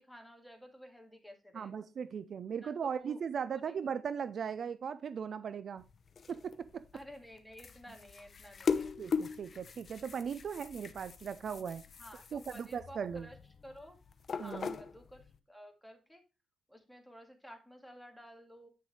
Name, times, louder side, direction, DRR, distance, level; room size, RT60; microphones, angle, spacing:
voice 1, 0.0-1.8 2.6-3.2 3.5-3.7 6.9-8.9 12.0-13.4 13.6-14.0 14.3-16.2 16.7-18.7, equal, ahead, 2.1 m, -53 dB
voice 2, 1.5-5.9 6.3-6.8 9.0-11.8 12.3-13.3 14.4-14.8, right 7 dB, 55° right, 0.5 m, -38 dB
sound 1, 5.8-15.4, left 5 dB, 45° left, 0.8 m, -40 dB
9.2 x 6.3 x 3.3 m
cardioid pair, 110°, 0 cm